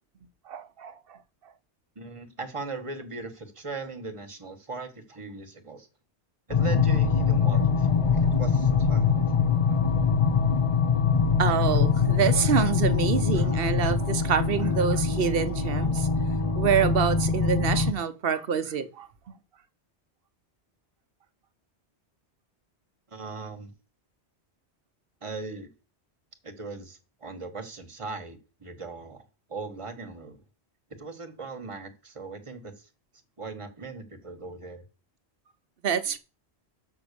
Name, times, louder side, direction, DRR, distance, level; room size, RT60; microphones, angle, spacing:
voice 1, 0.5-1.2 1.4-1.5 11.4-16.1 16.5-19.3 35.8-36.2, right 7 dB, 60° right, 0.9 m, -27 dB
voice 2, 1.9-5.9 6.5-9.2 23.1-23.7 25.2-25.7 26.4-30.4 31.0-32.9 33.4-34.8, right 3 dB, 30° right, 1.3 m, -39 dB
sound 1, 6.5-17.9, left 5 dB, 35° left, 0.7 m, -23 dB
6.1 x 5.8 x 6.7 m
omnidirectional pair, 1.1 m